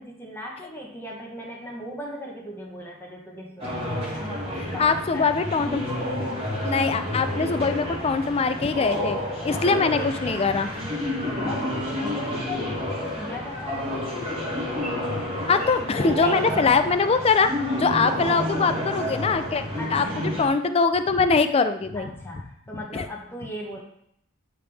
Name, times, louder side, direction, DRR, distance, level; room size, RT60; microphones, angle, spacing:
voice 1, 0.0-4.3 4.5-5.6 9.5-10.5 11.5-14.1 16.2-16.5 19.8-20.3 21.9-23.8, equal, 10° left, -2 dB, 1.0 m, -37 dB
sound 1, 3.6-20.5, left 1 dB, 25° right, 1.5 m, -30 dB
voice 2, 4.8-5.9 6.6-9.2 9.4-10.7 15.5-19.6 19.9-20.0 20.4-22.1 22.9-23.0, left 4 dB, 25° left, 10 dB, 0.3 m, -22 dB
9.4 x 3.4 x 3.4 m, 0.75 s
head